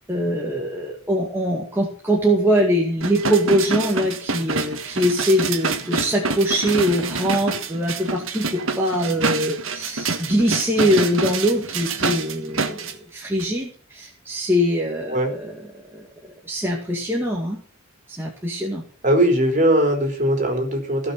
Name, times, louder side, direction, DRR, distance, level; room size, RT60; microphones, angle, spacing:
voice 1, 0.1-15.5 15.9-16.1 16.4-17.6 18.2-18.8, equal, 10° right, -3 dB, 2.1 m, -22 dB
sound 1, 3.0-12.9 13.4-13.5, right 4 dB, 70° right, 1.5 m, -27 dB
voice 2, 19.0-21.1, right 1 dB, 35° right, 3 dB, 3.9 m, -19 dB
17.0 x 6.0 x 6.9 m, 0.44 s
head